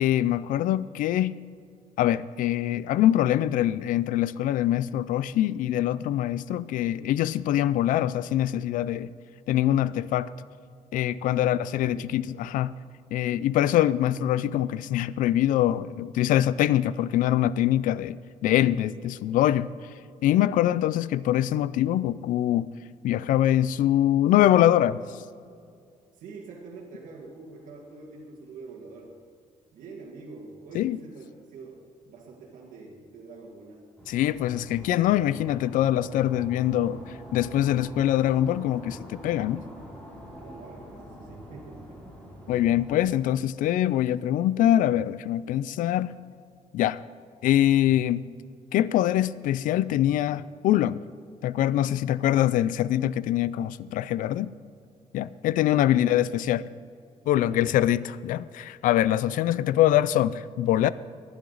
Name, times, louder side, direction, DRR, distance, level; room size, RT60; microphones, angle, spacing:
voice 1, 0.0-1.4 2.0-9.1 9.5-10.3 10.9-12.8 13.1-19.7 20.2-22.7 23.0-25.0 30.7-31.0 34.1-39.6 42.5-46.1 46.7-47.0 47.4-48.3 48.7-51.0 51.4-54.5 55.1-56.6 57.3-60.9, left 12 dB, 80° left, 18 dB, 0.4 m, -24 dB
voice 2, 11.3-12.0 26.2-29.1 29.7-31.8 32.1-33.8 40.4-42.0 55.9-56.3 56.6-56.8 57.2-57.7 59.2-59.8, right 4 dB, 80° right, -3 dB, 2.0 m, -45 dB
sound 1, 34.0-43.1, equal, 10° left, 3.2 m, -45 dB
19.5 x 10.5 x 4.0 m, 2.3 s
cardioid pair, 160°, 14 cm